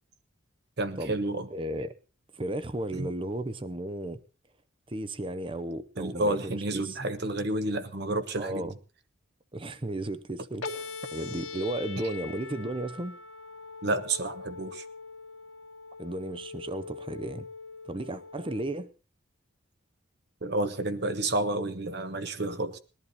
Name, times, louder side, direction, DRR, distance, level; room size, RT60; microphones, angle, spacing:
voice 1, 0.8-1.5 2.9-3.1 6.0-8.7 13.8-14.8 20.4-22.8, right 2 dB, 50° right, 1.0 m, -30 dB
voice 2, 1.5-1.9 2.3-4.2 4.9-7.0 8.4-8.7 9.5-13.2 16.0-17.5 17.8-18.9, right 1 dB, 25° right, 0.7 m, -34 dB
sound 1, 10.6-18.6, left 4 dB, 85° left, 1.5 m, -42 dB
19.5 x 11.5 x 4.1 m
head